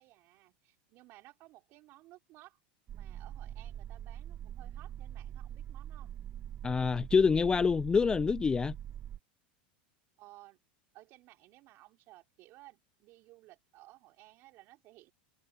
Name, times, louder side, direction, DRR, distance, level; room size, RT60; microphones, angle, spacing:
voice 1, 0.0-2.6 2.9-6.2 10.2-10.6 10.9-15.1, right 18 dB, 50° right, 3.5 m, -57 dB
sound 1, 2.9-9.2, right 10 dB, 30° right, 0.7 m, -43 dB
voice 2, 6.6-8.8, left 5 dB, 15° left, 0.3 m, -26 dB
supercardioid pair, 125°, 5 cm